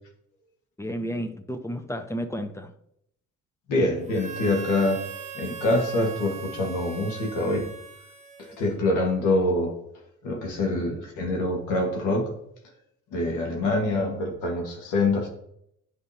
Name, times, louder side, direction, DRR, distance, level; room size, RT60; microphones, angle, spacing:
voice 1, 0.8-2.8 10.8-10.9 13.5-13.7, equal, 10° left, 9 dB, 0.7 m, -32 dB
voice 2, 3.7-5.0 5.3-7.7 8.4-9.7 10.2-12.3 13.1-15.3, left 2 dB, 85° left, 1 dB, 1.7 m, -25 dB
Harmonica, 4.1-8.9, right 6 dB, 25° right, 1.0 m, -40 dB
9.2 x 5.0 x 2.8 m, 0.74 s
cardioid pair, 90°, 30 cm